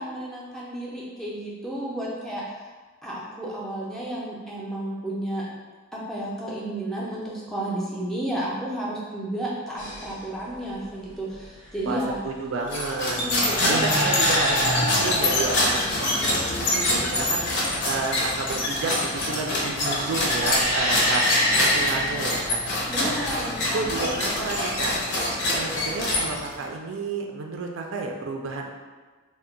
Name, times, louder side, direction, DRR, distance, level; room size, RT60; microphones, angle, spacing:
voice 1, 0.0-2.7 3.0-5.4 5.9-12.2 13.1-14.2 22.9-24.1, right 1 dB, ahead, -6 dB, 0.4 m, -32 dB
sound 1, 9.8-10.2 11.7-12.1 13.2-15.6 19.8-22.4 24.2-25.0, equal, 90° left, 1.1 m, -26 dB
voice 2, 11.9-13.2 13.6-17.4 17.8-21.2 21.5-22.6 23.0-23.2 23.7-25.0 25.5-28.7, right 3 dB, 70° right, 1 dB, 0.3 m, -31 dB
sound 2, 12.7-26.6, left 1 dB, 55° left, 0.6 m, -25 dB
2.2 x 2.1 x 3.7 m, 1.4 s
head